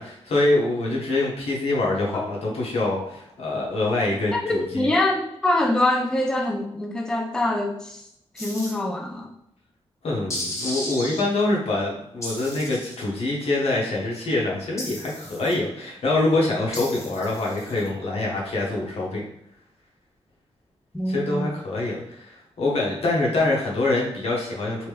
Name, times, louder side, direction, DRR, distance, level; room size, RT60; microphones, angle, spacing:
voice 1, 0.0-4.9 10.0-19.2 21.1-24.9, left 2 dB, 75° left, -3 dB, 1.1 m, -25 dB
voice 2, 4.3-8.0 8.3-9.3 20.9-21.5, left 1 dB, 5° left, 3 dB, 0.3 m, -24 dB
sound 1, 8.4-8.7 10.3-11.2 12.2-13.0 14.8-15.6 16.7-17.9, left 1 dB, 30° left, 0.8 m, -34 dB
3.1 x 2.9 x 3.3 m, 0.77 s
wide cardioid pair, 130°, 10 cm